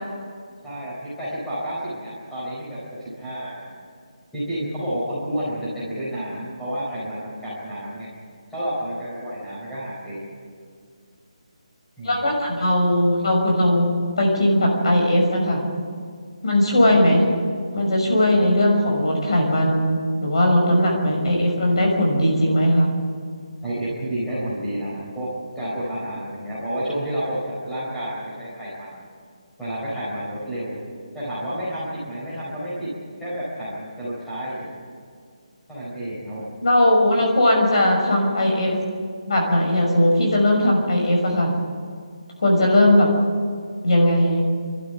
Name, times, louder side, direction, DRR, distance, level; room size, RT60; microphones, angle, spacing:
voice 1, 0.6-3.8 4.3-8.1 8.5-10.2 12.0-12.3 23.6-25.3 25.5-29.1 29.6-30.8 31.1-32.9 33.2-34.8 35.7-36.5, equal, 5° left, -10 dB, 4.2 m, -30 dB
voice 2, 12.0-13.9 14.2-15.6 16.4-17.2 17.7-22.9 36.6-38.8 39.3-41.5 42.4-43.1 43.8-44.4, left 1 dB, 50° left, 1 dB, 5.9 m, -18 dB
28.0 x 12.5 x 9.4 m, 2.1 s
hypercardioid pair, 175°, 4 cm